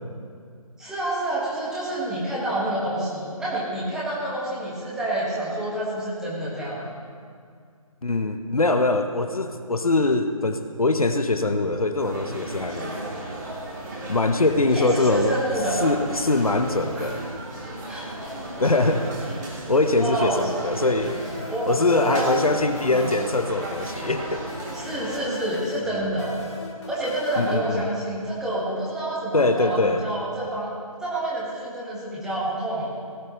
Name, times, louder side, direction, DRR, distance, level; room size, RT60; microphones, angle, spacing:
voice 1, 0.8-6.9 14.7-15.8 17.0-17.1 17.8-18.0 20.0-20.5 21.5-22.4 22.9-23.1 24.7-26.3 26.9-30.7 31.0-32.9, right 1 dB, 5° right, -7 dB, 1.6 m, -28 dB
voice 2, 8.0-12.9 14.1-15.4 15.8-17.3 18.6-19.1 19.7-21.3 21.7-24.4 27.4-27.9 29.3-30.1, left 2 dB, 75° left, 7 dB, 1.0 m, -22 dB
sound 1, 12.0-25.2, right 1 dB, 30° right, 2.9 m, -35 dB
sound 2, 21.0-28.3, left 2 dB, 50° left, 2.1 m, -42 dB
18.0 x 11.5 x 3.1 m, 2.2 s
figure-of-eight pair, 150°, 18 cm